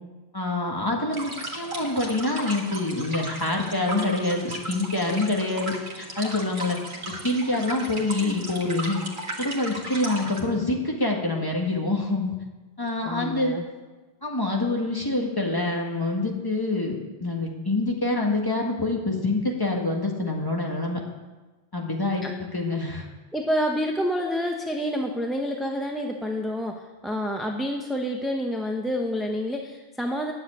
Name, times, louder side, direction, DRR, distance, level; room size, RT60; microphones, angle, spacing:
voice 1, 0.3-6.8 7.1-9.0 9.4-12.4 12.8-13.6 14.2-21.0 21.7-22.2 22.5-23.0, left 2 dB, 20° left, 0 dB, 1.7 m, -26 dB
sound 1, 1.1-10.4, right 1 dB, 45° right, 1.7 m, -36 dB
voice 2, 13.0-13.7 22.2-22.3 23.3-30.3, equal, ahead, 1 dB, 0.7 m, -28 dB
10.0 x 7.3 x 8.8 m, 1.2 s
omnidirectional pair, 1.1 m